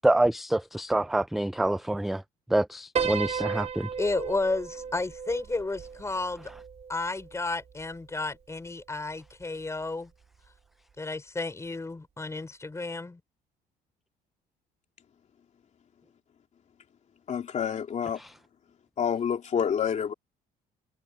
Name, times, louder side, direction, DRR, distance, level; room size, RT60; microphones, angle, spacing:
voice 1, 0.0-2.2 2.5-3.9 18.2-18.3, right 1 dB, ahead, 0.3 m, -26 dB
Piano, 3.0-7.4, right 6 dB, 40° right, 3.0 m, -34 dB
voice 2, 4.0-6.5 6.9-10.1 11.0-13.2, left 3 dB, 15° left, 5.4 m, -32 dB
voice 3, 17.3-18.2 19.0-20.1, left 8 dB, 45° left, 2.6 m, -28 dB
cardioid pair, 110°, 17 cm